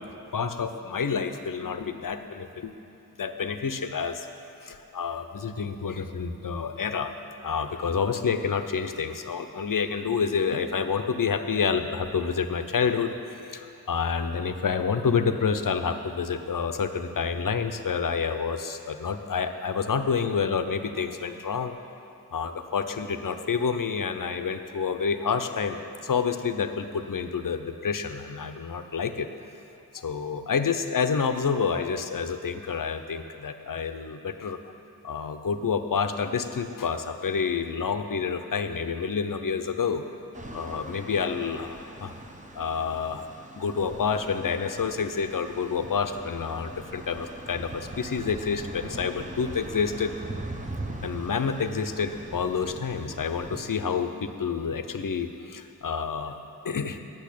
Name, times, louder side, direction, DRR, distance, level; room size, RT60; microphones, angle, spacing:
voice 1, 0.3-2.7 3.2-4.3 4.6-7.1 7.4-13.2 13.5-21.7 22.3-29.3 29.9-34.6 35.0-40.0 40.5-42.1 42.6-43.2 43.6-50.1 51.0-56.4 56.6-57.0, left 6 dB, 55° left, 8 dB, 0.6 m, -28 dB
sound 1, 40.3-53.6, right 1 dB, 20° right, 0.7 m, -41 dB
8.5 x 6.7 x 8.3 m, 2.8 s
wide cardioid pair, 70°, 40 cm